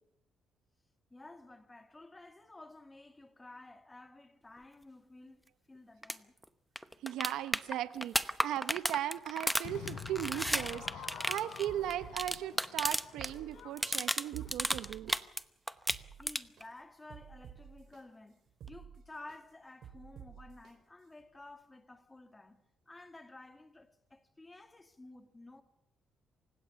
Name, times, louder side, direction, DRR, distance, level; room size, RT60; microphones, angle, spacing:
voice 1, 1.1-6.3 16.2-18.4 18.7-25.6, left 2 dB, 20° left, 1.9 m, -53 dB
sound 1, 6.0-6.2 6.4-6.5 6.8-13.3 13.6-15.4 15.7-16.6 18.7-18.8, equal, ahead, 0.9 m, -33 dB
voice 2, 7.0-15.1, right 12 dB, 85° right, 0.9 m, -37 dB
Crowd / Fireworks, 9.6-14.9, left 7 dB, 75° left, 4.4 m, -48 dB
sound 2, 10.5-11.2 11.7-12.6 13.0-13.9 14.4-15.3 15.7-16.7 17.1-18.0 18.5-19.4 19.8-20.7 21.2-21.3, right 8 dB, 70° right, 3.5 m, -52 dB
27.5 x 16.5 x 7.0 m
cardioid pair, 90°, 0 cm